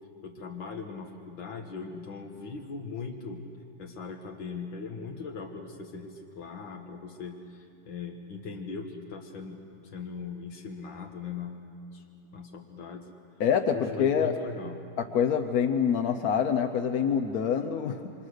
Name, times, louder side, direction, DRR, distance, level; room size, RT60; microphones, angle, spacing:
voice 1, 0.2-3.4 3.8-11.6 11.9-12.0 12.3-13.1 13.7-14.8, left 5 dB, 85° left, 2 dB, 2.1 m, -39 dB
voice 2, 13.4-14.3 15.0-18.1, left 7 dB, 60° left, 6 dB, 1.2 m, -26 dB
29.0 x 25.0 x 6.5 m, 2.5 s
omnidirectional pair, 2.0 m